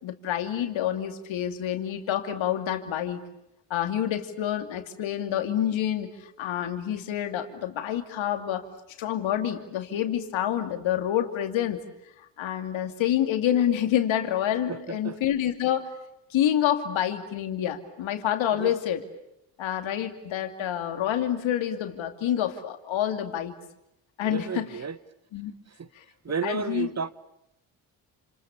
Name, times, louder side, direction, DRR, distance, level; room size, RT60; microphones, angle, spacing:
voice 1, 0.0-3.2 3.7-8.6 9.0-11.8 12.4-15.9 16.3-19.0 19.6-23.5 24.2-24.7 25.3-25.5 26.4-26.9, left 10 dB, 75° left, 2.7 m, -27 dB
voice 2, 14.7-15.2 18.5-18.7 24.2-25.0 25.7-25.9 26.2-27.1, right 5 dB, 35° right, 1.2 m, -32 dB
29.5 x 27.5 x 7.1 m
supercardioid pair, 50°, 47 cm